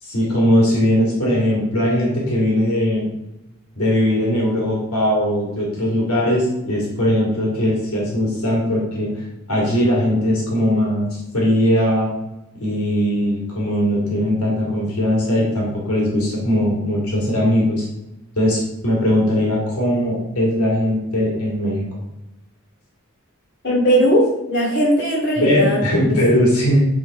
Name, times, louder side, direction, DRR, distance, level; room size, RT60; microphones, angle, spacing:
voice 1, 0.0-3.1 3.8-12.1 12.6-17.9 18.4-21.8 25.4-26.8, equal, 90° left, -3 dB, 2.4 m, -19 dB
voice 2, 23.6-25.8 26.1-26.2, equal, 50° left, -5 dB, 2.3 m, -18 dB
8.7 x 3.9 x 3.7 m, 0.93 s
head